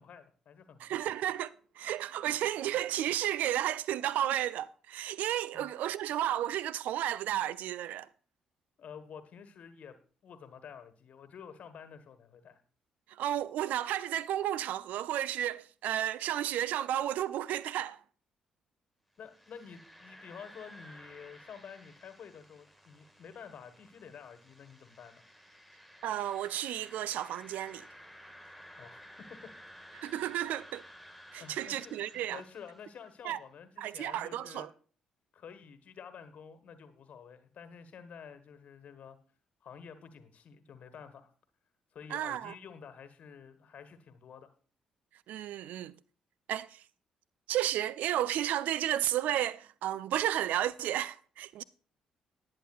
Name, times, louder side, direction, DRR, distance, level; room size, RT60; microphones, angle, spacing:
voice 1, 0.0-0.8 5.5-5.7 8.8-10.0 10.2-12.6 19.2-25.2 28.8-29.0 29.4-29.5 31.4-32.0 32.3-34.7 35.3-39.2 39.6-41.3 41.9-44.5, left 7 dB, 50° left, 1.4 m, -50 dB
voice 2, 0.8-8.1 13.1-18.0 26.0-27.9 30.0-30.8 31.3-32.4 33.2-33.4 33.8-34.7 42.1-42.5 45.3-45.9 46.5-46.8 47.5-51.6, right 12 dB, 60° right, 0.4 m, -32 dB
sound 1, 19.2-33.2, equal, ahead, 1.3 m, -54 dB
19.0 x 8.7 x 2.4 m
figure-of-eight pair, 40°, 3 cm